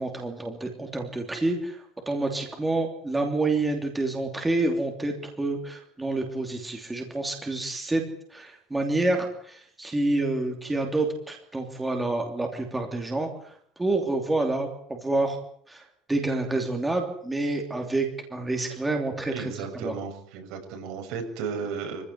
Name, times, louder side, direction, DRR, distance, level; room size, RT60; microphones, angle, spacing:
voice 1, 0.0-8.0 8.3-15.4 15.7-19.9, right 2 dB, 5° right, 3 dB, 3.0 m, -28 dB
voice 2, 19.3-22.0, right 5 dB, 55° right, 4 dB, 6.9 m, -34 dB
24.5 x 16.0 x 9.7 m, 0.64 s
cardioid pair, 170°, 0 cm